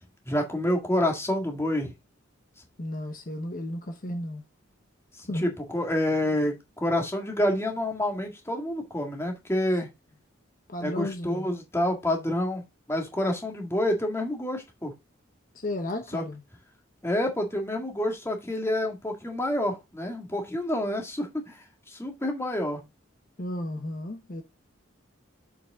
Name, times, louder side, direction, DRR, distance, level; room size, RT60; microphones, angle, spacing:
voice 1, 0.3-1.9 5.2-9.9 10.8-12.6 12.9-14.9 16.1-16.2 17.0-22.8, left 1 dB, 15° left, 1.8 m, -28 dB
voice 2, 2.8-4.4 5.3-5.5 10.7-11.5 15.5-16.4 23.4-24.4, left 1 dB, 45° left, 1.0 m, -33 dB
7.0 x 5.5 x 3.6 m
head